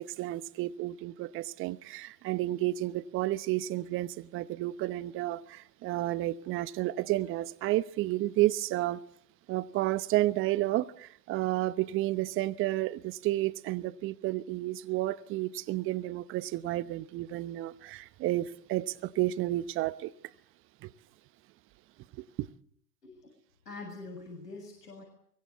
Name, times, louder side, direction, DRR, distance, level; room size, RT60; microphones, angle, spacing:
voice 1, 0.0-9.0 9.5-20.1 20.8-20.9 22.2-22.5, right 16 dB, 25° right, 1.0 m, -31 dB
voice 2, 23.7-25.0, left 3 dB, 85° left, 7.5 m, -44 dB
24.0 x 23.5 x 8.3 m
hypercardioid pair, 110°, 47 cm